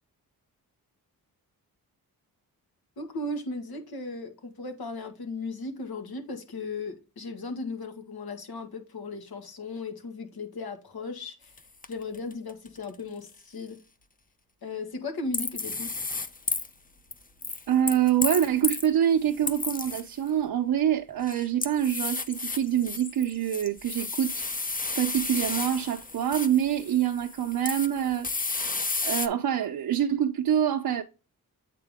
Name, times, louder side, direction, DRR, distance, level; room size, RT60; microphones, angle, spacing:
voice 1, 3.0-11.5 11.9-13.8 14.6-16.0, left 3 dB, 70° left, 1.8 m, -36 dB
sound 1, 11.6-11.7 11.8-12.8 15.3-16.7 17.1-18.9 19.3-20.3 21.1-29.3, left 3 dB, 20° left, 0.8 m, -33 dB
voice 2, 17.7-24.3 24.9-28.6 29.0-31.0, right 10 dB, 65° right, 0.7 m, -25 dB
8.4 x 3.8 x 3.6 m
cardioid pair, 75°, 38 cm